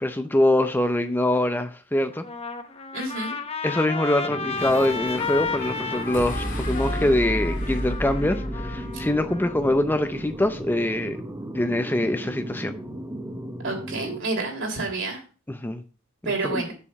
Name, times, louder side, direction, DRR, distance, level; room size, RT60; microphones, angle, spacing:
voice 1, 0.0-2.3 3.6-11.2 11.5-12.7 15.5-15.8 16.2-16.6, left 1 dB, 10° left, 0.6 m, -24 dB
Trumpet, 2.1-9.5, left 4 dB, 30° left, 0.9 m, -33 dB
voice 2, 2.9-3.3 13.6-15.2 16.2-16.7, right 3 dB, 60° right, 3.4 m, -29 dB
sound 1, 4.3-14.2, right 1 dB, 15° right, 1.0 m, -36 dB
sound 2, 4.5-10.9, equal, 60° left, 3.0 m, -33 dB
7.1 x 6.9 x 6.3 m
head